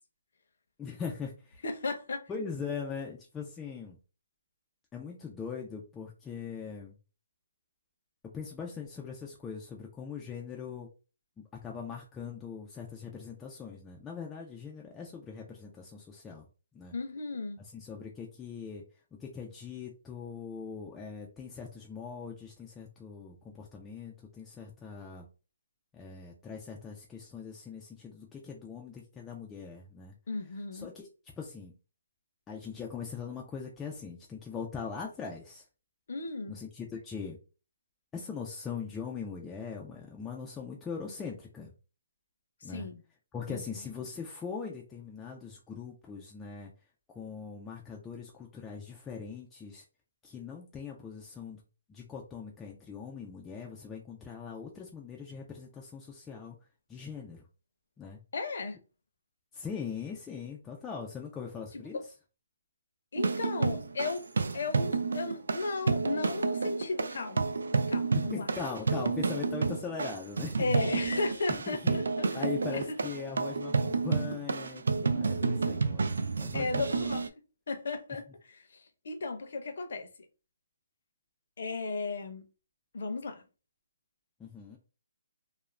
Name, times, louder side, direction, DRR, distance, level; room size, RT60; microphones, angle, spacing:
voice 1, 0.8-1.6 2.3-4.0 4.9-7.0 8.2-10.9 11.4-16.5 16.7-16.9 17.7-18.8 19.2-25.3 25.9-30.1 30.7-31.1 31.4-31.7 32.5-35.6 36.5-37.4 38.1-41.7 42.6-42.9 43.3-46.7 47.1-49.8 50.2-51.6 51.9-56.6 56.9-57.4 58.0-58.2 59.5-62.0 68.1-70.7 71.7-72.0 72.3-76.7 77.0-77.1 84.4-84.8, left 6 dB, 10° left, 0.3 m, -41 dB
voice 2, 1.6-2.3 16.9-17.6 30.3-30.9 36.1-36.6 42.7-43.0 43.5-43.6 58.3-58.8 61.7-62.0 63.1-64.3 64.5-67.5 67.9-68.5 70.6-72.4 72.7-73.0 76.5-77.3 77.7-80.1 81.6-82.5 82.9-83.4, left 3 dB, 55° left, 0.6 m, -35 dB
sound 1, 63.2-77.3, right 4 dB, 80° right, 0.3 m, -30 dB
2.4 x 2.1 x 3.1 m
hypercardioid pair, 175°, 0 cm